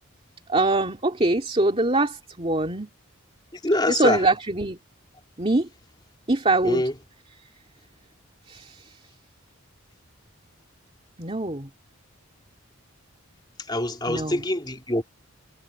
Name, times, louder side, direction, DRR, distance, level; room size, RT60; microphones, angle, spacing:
voice 1, 0.5-2.9 3.9-4.8 5.4-5.7 6.3-6.8 8.5-9.0 11.2-11.7 14.1-14.4, right 2 dB, 25° right, 2.5 m, -23 dB
voice 2, 3.6-4.2 6.6-6.9 13.7-15.1, left 1 dB, 20° left, 2.9 m, -24 dB
head